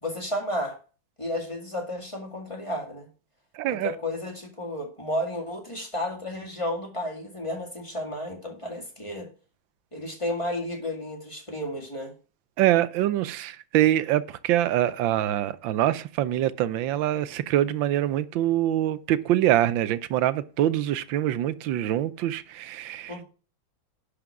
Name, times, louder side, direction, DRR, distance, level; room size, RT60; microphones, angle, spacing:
voice 1, 0.0-0.8 1.2-3.1 3.7-9.3 9.9-12.1 23.1-23.2, left 1 dB, 15° left, 2.1 m, -32 dB
voice 2, 3.5-3.9 12.6-23.2, right 13 dB, 85° right, 1.4 m, -24 dB
11.0 x 5.1 x 6.0 m
omnidirectional pair, 2.0 m